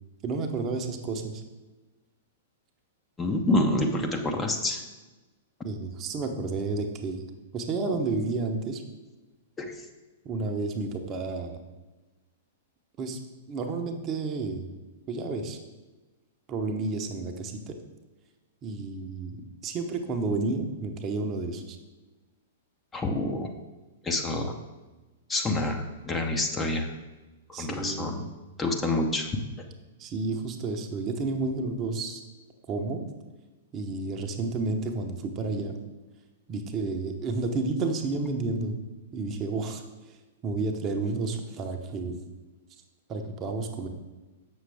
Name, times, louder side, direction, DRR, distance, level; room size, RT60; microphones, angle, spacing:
voice 1, 0.2-1.4 5.6-7.2 7.5-8.8 10.2-11.6 13.0-13.2 13.5-14.7 15.1-15.6 16.5-17.8 18.6-21.8 27.5-28.1 30.0-32.2 32.7-33.0 33.7-35.8 36.5-38.7 39.1-39.8 40.4-42.2 43.1-43.9, right 3 dB, 30° right, 4 dB, 0.8 m, -31 dB
voice 2, 3.2-4.8 9.6-9.8 22.9-23.5 24.0-24.5 25.3-26.9 27.5-28.3 28.6-29.3, left 2 dB, 15° left, 3 dB, 0.7 m, -27 dB
7.4 x 6.2 x 3.4 m, 1.2 s
figure-of-eight pair, 105°, 0 cm